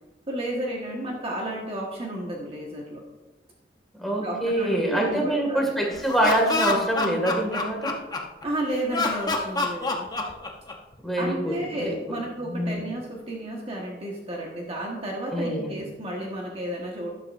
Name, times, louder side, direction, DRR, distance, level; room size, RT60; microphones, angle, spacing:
voice 1, 0.3-3.0 4.2-5.9 8.4-10.1 11.2-17.1, right 1 dB, 30° right, -1 dB, 1.5 m, -32 dB
voice 2, 3.9-8.0 11.0-12.0 12.4-12.8 15.3-15.8, right 1 dB, ahead, -1 dB, 2.1 m, -25 dB
Laughter, 5.9-8.4 8.9-11.0, left 3 dB, 20° left, 1.0 m, -27 dB
12.5 x 10.5 x 2.6 m, 1.1 s
head